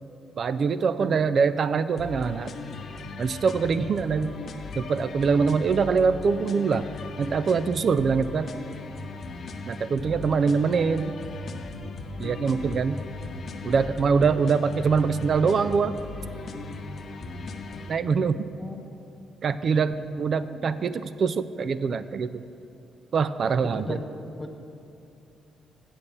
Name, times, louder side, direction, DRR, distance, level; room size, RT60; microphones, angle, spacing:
voice 1, 0.4-2.5 3.2-4.3 4.8-6.9 7.2-8.5 9.6-11.1 12.2-13.0 13.6-15.9 17.9-18.5 19.4-22.4 23.1-24.0, right 5 dB, 50° right, 14 dB, 0.3 m, -24 dB
voice 2, 1.0-1.4 18.6-19.0 20.0-20.9 23.6-24.6, left 1 dB, 10° left, 5 dB, 0.8 m, -38 dB
sound 1, 2.0-18.0, left 3 dB, 50° left, 0.8 m, -37 dB
8.8 x 7.2 x 6.6 m, 2.7 s
cardioid pair, 90°, 0 cm